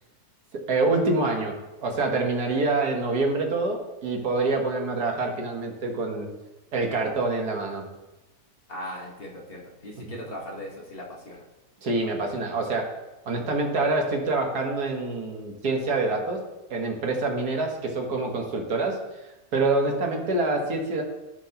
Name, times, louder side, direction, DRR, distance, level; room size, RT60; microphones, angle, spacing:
voice 1, 0.7-1.5 1.8-6.3 6.7-7.8 10.1-10.2 11.8-12.9 13.3-16.4 16.7-19.0 19.5-21.0, right 3 dB, 90° right, 1 dB, 1.9 m, -26 dB
voice 2, 8.7-11.4, left 1 dB, 40° left, -2 dB, 1.5 m, -38 dB
15.5 x 5.8 x 2.9 m, 1.0 s
omnidirectional pair, 1.6 m